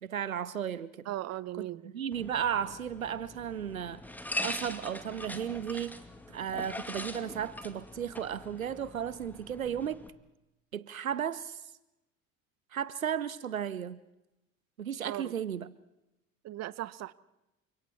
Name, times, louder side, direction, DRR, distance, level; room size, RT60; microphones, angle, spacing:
voice 1, 0.0-1.0 1.6-1.7 1.9-4.0 4.4-6.0 6.3-10.0 10.7-11.6 12.7-14.0 14.8-15.7, right 9 dB, 85° right, 0.7 m, -34 dB
voice 2, 1.0-1.9 15.0-15.3 16.4-17.1, right 14 dB, 40° right, 1.0 m, -38 dB
sound 1, 2.1-10.1, left 1 dB, 5° left, 2.3 m, -42 dB
29.5 x 26.0 x 4.4 m
figure-of-eight pair, 60°, 40 cm